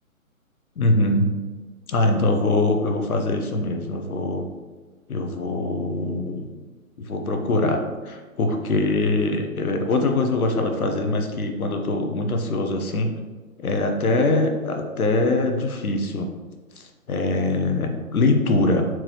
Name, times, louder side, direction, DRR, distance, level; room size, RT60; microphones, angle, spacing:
voice 1, 0.8-1.3 1.9-4.4 5.1-6.5 7.0-13.1 13.6-16.3 16.8-18.9, left 2 dB, 85° left, 4 dB, 0.9 m, -23 dB
4.5 x 3.7 x 3.1 m, 1.3 s
hypercardioid pair, 150°, 42 cm